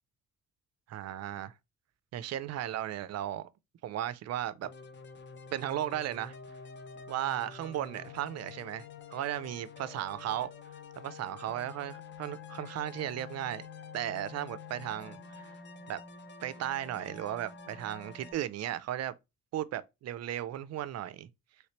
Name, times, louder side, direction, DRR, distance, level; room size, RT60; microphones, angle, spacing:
voice 1, 0.9-1.5 2.1-3.5 3.8-4.7 5.5-6.3 7.1-8.8 9.1-10.5 11.0-13.7 13.9-15.6 15.9-16.0 16.4-19.1 19.5-21.3, right 12 dB, 60° right, 0.4 m, -35 dB
sound 1, 4.6-18.3, left 6 dB, 40° left, 0.6 m, -48 dB
3.2 x 3.1 x 2.8 m
cardioid pair, 90°, 30 cm